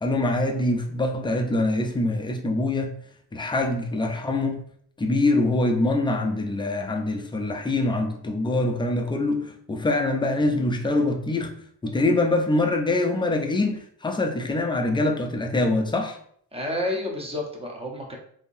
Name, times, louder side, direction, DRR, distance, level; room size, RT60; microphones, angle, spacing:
voice 1, 0.0-2.9 3.3-4.6 5.0-11.5 11.8-16.2, left 2 dB, 10° left, 4 dB, 0.4 m, -24 dB
voice 2, 16.5-18.2, left 1 dB, 15° right, 0 dB, 0.8 m, -30 dB
3.6 x 2.7 x 2.6 m, 0.62 s
cardioid pair, 95°, 41 cm